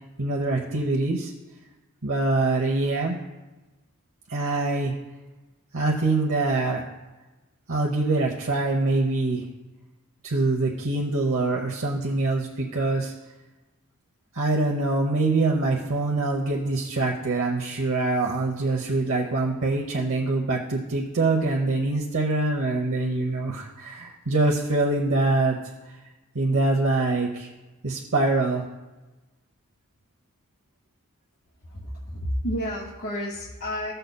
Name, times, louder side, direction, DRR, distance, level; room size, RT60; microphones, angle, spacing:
voice 1, 0.2-1.3 2.0-3.2 4.3-4.9 5.7-6.8 7.7-9.4 10.2-13.1 14.3-25.6 26.3-27.5 27.8-28.6, right 2 dB, 65° right, 0 dB, 0.8 m, -24 dB
voice 2, 31.6-33.9, equal, 65° left, -4 dB, 1.6 m, -31 dB
15.5 x 6.6 x 2.2 m, 1.1 s
head